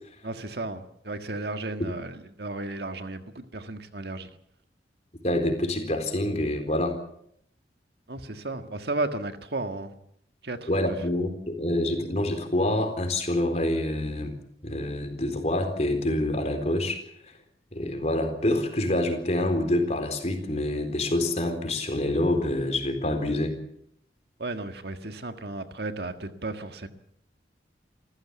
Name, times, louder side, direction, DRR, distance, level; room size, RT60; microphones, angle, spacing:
voice 1, 0.2-4.3 8.1-9.9 10.4-10.7 24.4-26.9, right 2 dB, 60° right, 8 dB, 1.7 m, -34 dB
voice 2, 5.2-7.0 10.7-14.4 14.6-17.0 17.7-23.6, left 1 dB, 40° left, 6 dB, 4.0 m, -26 dB
28.0 x 14.5 x 8.2 m, 0.70 s
head